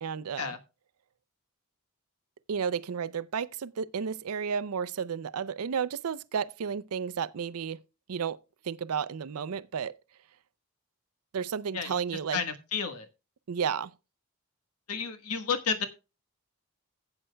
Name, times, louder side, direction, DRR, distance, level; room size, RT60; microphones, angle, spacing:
voice 1, 0.0-0.6 2.5-7.8 8.1-8.4 8.6-10.0 11.3-12.4 13.5-13.9, right 7 dB, 80° right, 0.5 m, -32 dB
voice 2, 12.3-13.1 14.9-15.9, left 6 dB, 90° left, 1.3 m, -31 dB
15.5 x 8.8 x 2.2 m
head